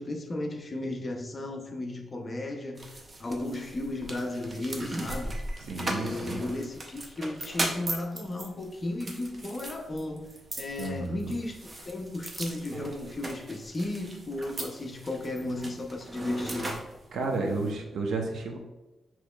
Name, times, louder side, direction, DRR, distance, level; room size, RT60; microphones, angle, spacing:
voice 1, 0.0-2.9 3.2-5.4 5.7-16.8, left 2 dB, 25° left, 0.5 m, -35 dB
sound 1, 2.8-17.7, right 1 dB, 25° right, 0.5 m, -38 dB
voice 2, 5.6-6.4 10.8-11.3 17.1-18.6, right 3 dB, 75° right, 0.6 m, -32 dB
6.1 x 3.0 x 2.2 m
wide cardioid pair, 160°, 0 cm